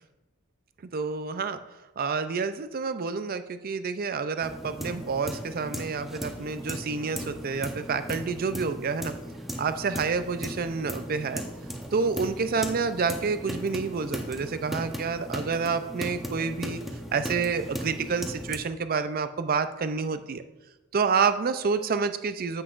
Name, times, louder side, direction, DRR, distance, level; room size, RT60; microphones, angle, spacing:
voice 1, 0.9-1.6 2.0-9.1 9.6-11.4 11.9-16.8 17.1-20.4 20.9-22.6, right 5 dB, 40° right, 11 dB, 0.4 m, -28 dB
sound 1, 4.4-18.6, equal, ahead, 0.7 m, -37 dB
9.7 x 7.9 x 2.5 m, 1.0 s
head